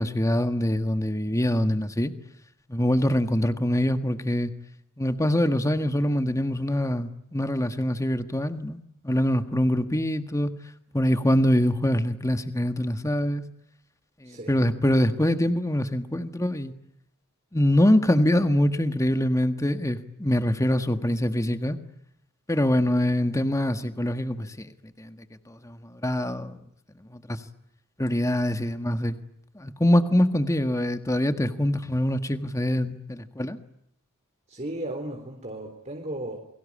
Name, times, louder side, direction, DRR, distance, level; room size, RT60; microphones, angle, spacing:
voice 1, 0.0-2.1 2.7-4.5 5.0-10.5 10.9-13.4 14.2-16.7 17.5-21.8 22.5-25.2 25.5-26.6 27.1-27.4 28.0-29.2 29.5-33.6, left 1 dB, 15° left, 9 dB, 1.6 m, -24 dB
voice 2, 14.2-14.6 34.5-36.4, right 1 dB, 30° right, 2 dB, 3.8 m, -35 dB
29.5 x 23.0 x 8.7 m, 0.76 s
head